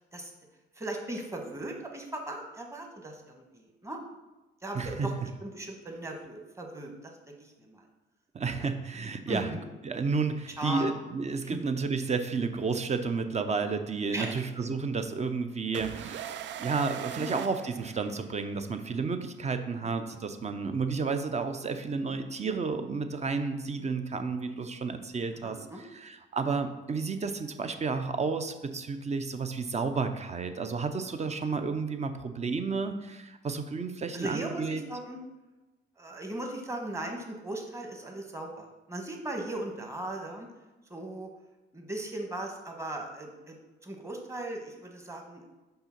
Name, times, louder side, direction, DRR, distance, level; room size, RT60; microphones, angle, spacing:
voice 1, 0.7-4.0 4.6-5.1 5.4-7.8 8.6-8.7 9.3-9.6 10.6-10.9 11.4-11.6 14.1-14.4 17.1-17.3 19.8-20.0 22.1-22.2 25.4-25.8 34.1-35.2 36.0-40.5 40.9-41.3 41.7-45.5, right 1 dB, 15° right, 2 dB, 1.3 m, -38 dB
voice 2, 4.7-5.1 8.3-9.5 9.8-25.6 25.9-34.8, right 4 dB, 35° right, 8 dB, 0.7 m, -31 dB
sound 1, 15.7-18.5, right 11 dB, 65° right, 0.4 m, -40 dB
5.6 x 3.8 x 5.8 m, 1.1 s
cardioid pair, 90°, 20 cm